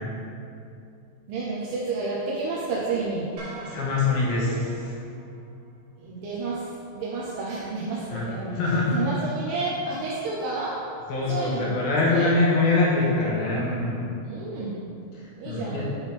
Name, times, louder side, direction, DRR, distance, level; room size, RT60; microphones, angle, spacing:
voice 1, 1.3-3.3 6.0-8.6 8.9-10.8 11.3-11.7 12.1-12.3 14.2-14.8 15.4-15.8, right 3 dB, 80° right, -5 dB, 2.1 m, -30 dB
sound 1, 3.4-5.7, right 2 dB, 60° right, 1.4 m, -45 dB
voice 2, 3.6-4.9 8.1-9.0 11.1-14.0 15.1-15.9, left 3 dB, 75° left, -5 dB, 2.5 m, -24 dB
8.1 x 5.6 x 3.5 m, 2.5 s
omnidirectional pair, 4.9 m